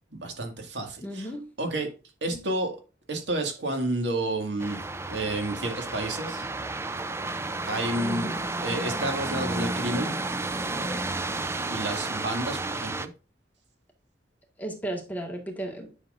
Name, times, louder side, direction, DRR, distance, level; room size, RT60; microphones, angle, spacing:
voice 1, 0.1-1.3 1.6-1.9 2.2-2.7 3.1-4.8 5.1-6.5 7.7-8.3 8.6-10.2 11.7-13.1, right 2 dB, 85° right, 4 dB, 2.0 m, -30 dB
voice 2, 1.0-1.4 2.3-2.4 8.0-8.4 14.6-15.9, equal, 10° left, 2 dB, 1.7 m, -34 dB
sound 1, 4.6-13.1, right 2 dB, 15° right, 0.5 m, -32 dB
9.9 x 6.3 x 2.6 m, 0.33 s
head